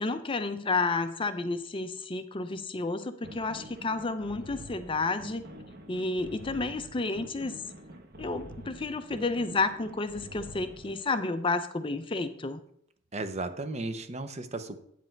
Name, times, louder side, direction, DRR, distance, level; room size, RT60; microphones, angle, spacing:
voice 1, 0.0-5.4 5.9-7.5 8.2-12.6, left 3 dB, 25° left, 10 dB, 0.5 m, -31 dB
sound 1, 3.2-11.0, equal, 55° right, 1.1 m, -47 dB
voice 2, 13.1-14.8, right 2 dB, 35° right, 8 dB, 0.7 m, -35 dB
8.9 x 7.7 x 4.5 m, 0.68 s
head